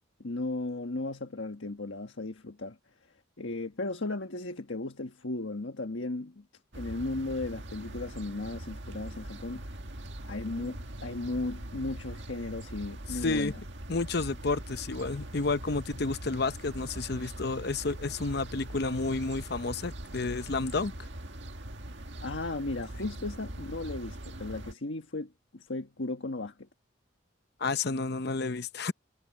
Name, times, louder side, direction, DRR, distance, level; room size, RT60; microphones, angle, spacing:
voice 1, 0.2-2.8 3.4-6.5 6.7-9.6 10.2-13.6 22.2-26.7, left 2 dB, 75° left, 1.4 m, -36 dB
sound 1, 6.7-24.7, right 1 dB, 65° right, 1.9 m, -42 dB
voice 2, 13.2-13.5 13.9-20.9 27.6-28.9, left 3 dB, 55° left, 0.8 m, -31 dB
head